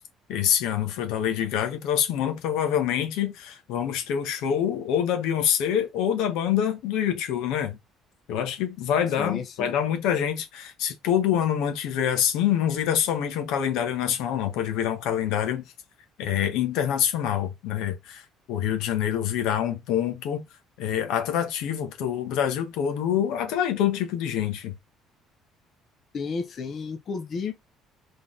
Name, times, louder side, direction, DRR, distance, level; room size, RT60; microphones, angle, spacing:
voice 1, 0.3-7.8 8.3-15.6 16.2-20.4 20.8-24.7, left 9 dB, 80° left, 1.2 m, -26 dB
voice 2, 9.2-9.7 26.1-27.5, left 5 dB, 45° left, 0.7 m, -32 dB
3.9 x 3.5 x 3.8 m
cardioid pair, 110°, 0 cm